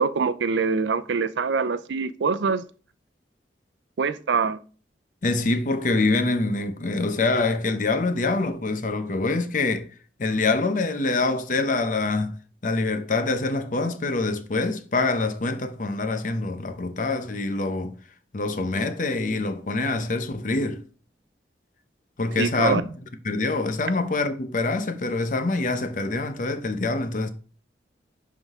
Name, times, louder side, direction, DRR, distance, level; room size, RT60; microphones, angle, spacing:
voice 1, 0.0-2.7 4.0-4.6 22.4-22.8, right 5 dB, 85° right, 0.5 m, -24 dB
voice 2, 5.2-9.9 10.2-18.0 18.3-20.8 22.2-22.9 23.2-27.3, left 3 dB, 45° left, 0.7 m, -25 dB
11.0 x 3.8 x 3.6 m
head